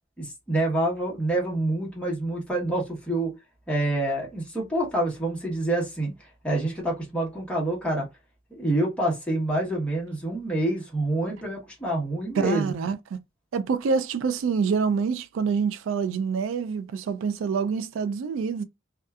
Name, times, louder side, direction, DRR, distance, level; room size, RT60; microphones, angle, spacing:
voice 1, 0.2-3.3 3.7-6.1 6.4-8.1 8.5-12.7, right 1 dB, 5° left, 1.1 m, -27 dB
voice 2, 12.3-13.2 13.5-18.6, right 5 dB, 80° right, 0.3 m, -26 dB
2.6 x 2.3 x 2.3 m
head